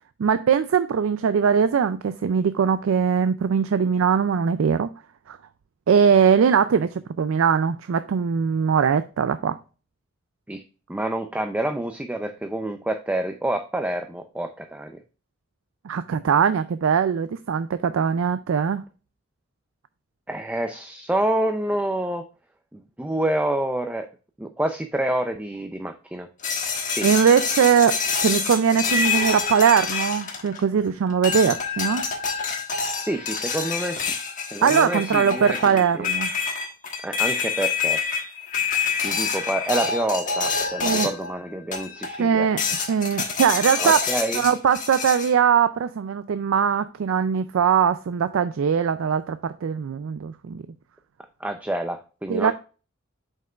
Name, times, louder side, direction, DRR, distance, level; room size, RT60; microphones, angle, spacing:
voice 1, 0.2-4.9 5.3-5.4 5.9-9.6 15.8-18.8 27.0-32.1 34.6-36.3 40.8-41.1 42.2-44.0 44.3-50.6 52.3-52.5, right 7 dB, 80° right, 0.4 m, -21 dB
voice 2, 10.9-14.9 20.3-22.2 22.7-24.1 24.4-26.3 26.9-27.1 33.1-34.1 34.5-36.1 37.0-38.0 39.0-42.5 43.8-44.4 51.4-52.5, right 1 dB, 5° right, 0.4 m, -27 dB
sound 1, 26.4-30.8 31.2-41.3 41.7-42.2 42.6-45.3, left 5 dB, 40° left, 1.3 m, -27 dB
7.5 x 5.4 x 2.3 m
head